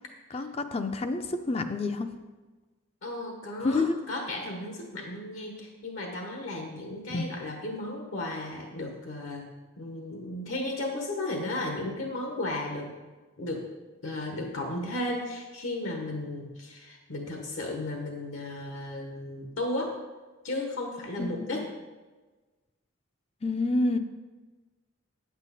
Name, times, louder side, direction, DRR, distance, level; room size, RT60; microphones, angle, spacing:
voice 1, 0.3-2.1 3.6-4.0 7.1-7.3 21.2-21.6 23.4-24.0, left 2 dB, 30° left, 8 dB, 0.5 m, -28 dB
voice 2, 3.0-9.5 9.8-12.9 13.4-13.7 14.0-20.0 20.4-21.7, left 1 dB, 75° left, 1 dB, 1.2 m, -34 dB
8.9 x 8.2 x 4.1 m, 1.3 s
head